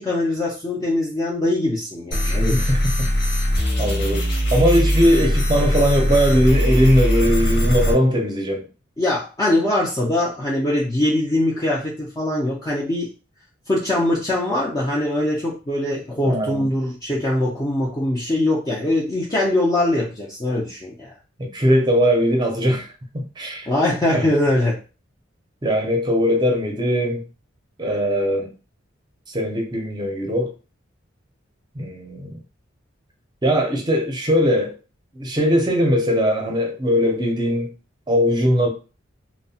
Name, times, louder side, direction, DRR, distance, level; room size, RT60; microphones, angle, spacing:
voice 1, 0.0-2.7 9.0-13.1 13.7-21.1 23.7-24.8, left 1 dB, 20° left, 0.5 m, -22 dB
sound 1, 2.1-7.9, equal, 60° left, 1.1 m, -20 dB
voice 2, 2.2-2.8 3.8-4.3 4.5-8.6 16.2-16.6 21.4-22.9 23.1-23.7 24.1-24.3 25.6-27.2 27.8-28.5 29.3-30.5 31.7-32.3 33.4-34.7 35.1-37.7 38.1-38.7, equal, 25° right, 0.6 m, -20 dB
2.7 x 2.0 x 2.7 m
head